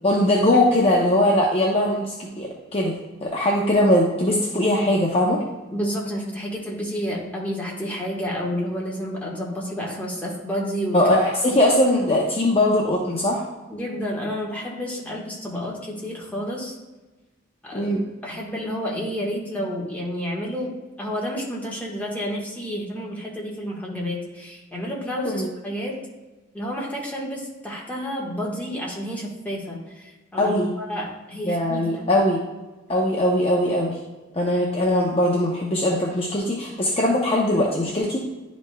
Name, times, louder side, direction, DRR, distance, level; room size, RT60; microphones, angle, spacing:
voice 1, 0.0-2.9 3.2-5.4 10.9-13.4 17.7-18.0 25.2-25.5 30.4-30.7 31.4-32.4 32.9-34.0 34.3-38.2, left 1 dB, 30° left, -2 dB, 0.7 m, -20 dB
voice 2, 5.7-11.1 11.5-11.6 13.7-16.7 17.6-17.9 18.2-26.0 26.5-32.1, equal, 10° left, -3 dB, 1.4 m, -30 dB
11.0 x 5.2 x 2.2 m, 1.2 s
head